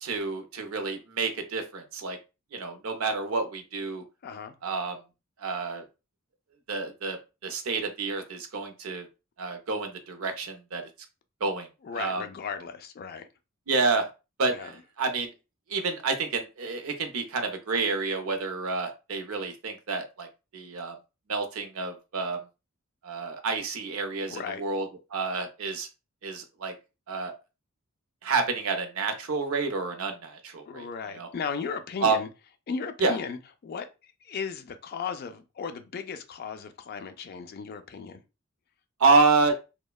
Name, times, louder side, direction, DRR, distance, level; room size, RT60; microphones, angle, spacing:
voice 1, 0.0-2.2 2.5-4.0 4.6-5.0 5.4-5.9 6.7-7.2 7.4-9.1 9.4-10.8 11.4-11.7 11.9-12.2 13.7-14.1 14.4-15.3 15.7-20.3 20.5-20.9 21.3-22.4 23.0-24.9 25.1-25.9 26.2-26.7 27.1-27.3 28.2-30.9 31.1-31.3 32.0-32.2 33.0-33.2 39.0-39.5, right 4 dB, 70° right, 0.5 m, -28 dB
voice 2, 4.2-4.5 11.8-13.3 14.5-14.7 24.3-24.6 30.7-32.3 32.7-38.2, left 6 dB, 45° left, 0.3 m, -36 dB
2.9 x 2.1 x 2.3 m
head